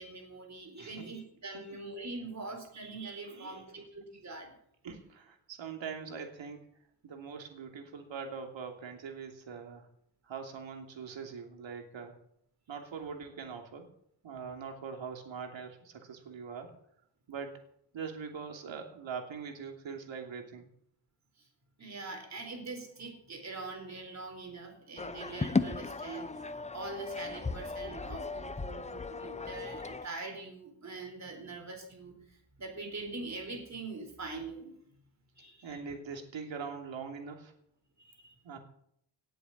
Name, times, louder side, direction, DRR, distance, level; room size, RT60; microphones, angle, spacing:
voice 1, 0.0-4.5 21.4-21.5 21.8-34.8 35.4-35.8 38.0-38.4, right 3 dB, 35° right, 4 dB, 4.3 m, -43 dB
voice 2, 3.3-3.7 4.8-6.6 7.0-9.9 10.2-12.2 12.7-13.9 14.2-16.7 17.3-17.6 17.9-20.7 35.6-37.5 38.4-38.6, right 6 dB, 70° right, 3 dB, 3.0 m, -42 dB
sound 1, 25.0-30.1, left 4 dB, 15° left, 0.6 m, -36 dB
18.0 x 7.8 x 7.3 m, 0.71 s
wide cardioid pair, 135°, 47 cm